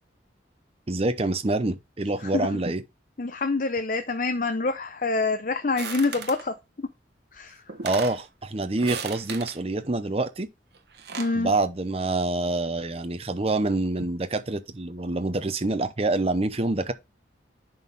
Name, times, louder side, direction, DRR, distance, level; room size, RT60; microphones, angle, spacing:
voice 1, 0.9-2.8 7.8-10.5 11.3-16.9, right 2 dB, 30° right, 0.7 m, -26 dB
voice 2, 3.2-6.5 7.3-7.6 11.2-11.5, left 3 dB, 45° left, 0.6 m, -26 dB
sound 1, 5.8-6.5 7.4-7.5 7.7-8.2 8.8-9.6 10.7-11.4, right 6 dB, 60° right, 1.1 m, -36 dB
10.5 x 4.2 x 3.5 m
head